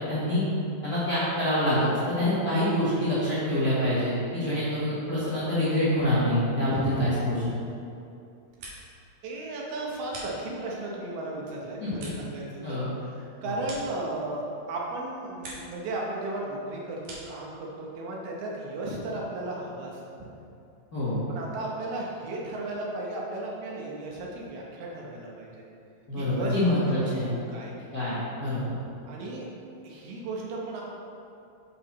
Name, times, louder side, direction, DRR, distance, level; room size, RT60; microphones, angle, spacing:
voice 1, 0.1-0.4 0.8-7.4 11.8-11.9 12.6-12.9 13.4-13.6 20.9-21.2 26.1-27.4 27.9-28.6, left 1 dB, 85° left, -11 dB, 0.8 m, -26 dB
sound 1, 8.3-9.1 9.4-10.9 11.3-14.6 14.9-15.8 16.1-17.5, right 2 dB, 60° right, 2.5 m, -46 dB
voice 2, 9.2-12.8 13.1-17.0 17.3-19.9 21.3-25.6 26.2-27.7 29.1-29.5 29.8-30.8, right 2 dB, 75° right, -2 dB, 3.0 m, -35 dB
8.2 x 5.9 x 4.2 m, 2.7 s
omnidirectional pair, 4.6 m